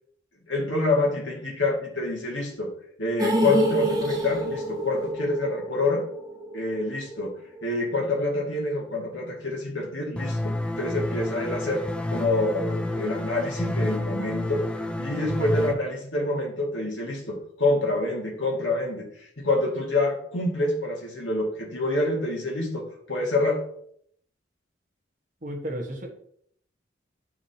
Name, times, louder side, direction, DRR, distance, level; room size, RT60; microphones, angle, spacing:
voice 1, 0.5-2.7 3.0-6.0 6.5-7.3 7.6-11.8 12.1-14.6 15.0-23.6, left 2 dB, 70° left, -1 dB, 2.1 m, -27 dB
sound 1, 3.2-7.3 7.6-7.7 8.1-8.2, right 1 dB, 20° right, 0.9 m, -27 dB
sound 2, 10.2-15.7, left 1 dB, 5° left, 0.4 m, -29 dB
voice 2, 25.4-26.1, equal, 40° right, 0 dB, 1.4 m, -33 dB
10.0 x 4.9 x 2.9 m, 0.66 s
head